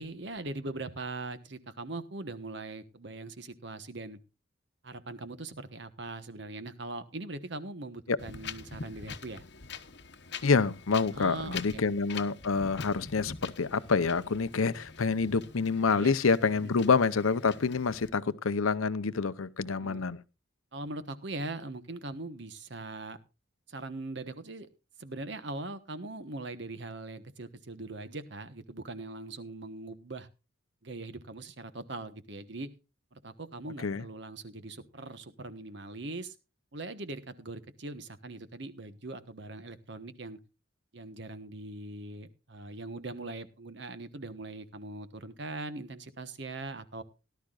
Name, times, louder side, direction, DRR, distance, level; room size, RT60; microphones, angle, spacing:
voice 1, 0.0-4.2 4.8-9.4 11.1-11.8 15.9-16.1 16.6-16.7 19.8-20.0 20.7-23.2 23.7-24.7 25.0-30.3 30.8-32.7 33.1-36.3 36.7-40.4 40.9-47.0, right 2 dB, 55° right, 1.2 m, -41 dB
Wind, 8.2-18.1, left 5 dB, 55° left, 1.0 m, -45 dB
voice 2, 10.4-20.2 33.8-34.0, left 4 dB, 90° left, 0.7 m, -27 dB
18.0 x 12.0 x 2.5 m
head